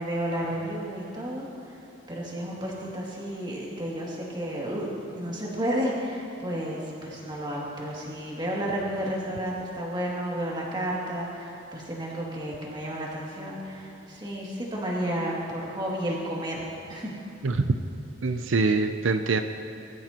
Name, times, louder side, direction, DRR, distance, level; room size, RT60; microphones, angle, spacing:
voice 1, 0.0-1.8 2.1-4.9 5.1-17.1, equal, 25° right, -4 dB, 2.5 m, -32 dB
voice 2, 17.4-17.8 18.2-19.4, right 3 dB, 85° right, 7 dB, 0.6 m, -24 dB
23.0 x 14.0 x 3.0 m, 2.7 s
head